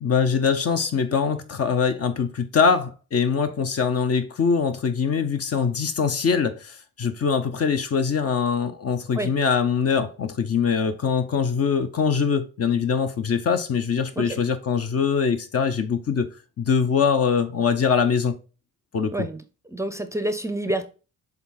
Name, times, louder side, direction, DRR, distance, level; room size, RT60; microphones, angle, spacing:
voice 1, 0.0-16.3 16.6-18.3 18.9-19.1, left 6 dB, 45° left, 0.9 m, -23 dB
voice 2, 19.7-20.9, right 1 dB, 10° right, 0.6 m, -28 dB
7.0 x 3.7 x 4.0 m
cardioid pair, 90°, 32 cm